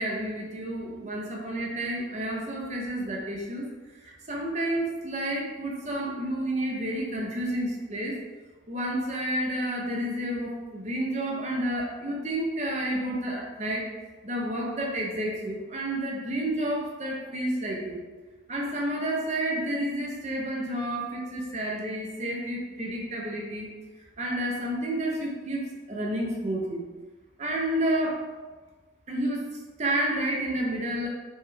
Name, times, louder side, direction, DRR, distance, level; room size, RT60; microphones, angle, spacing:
voice 1, 0.0-3.7 4.0-8.2 8.7-13.9 14.2-18.0 18.5-23.7 24.2-26.8 27.4-28.2 29.1-29.5 29.8-31.1, right 1 dB, 35° right, -2 dB, 0.7 m, -30 dB
3.4 x 3.1 x 3.2 m, 1.3 s
head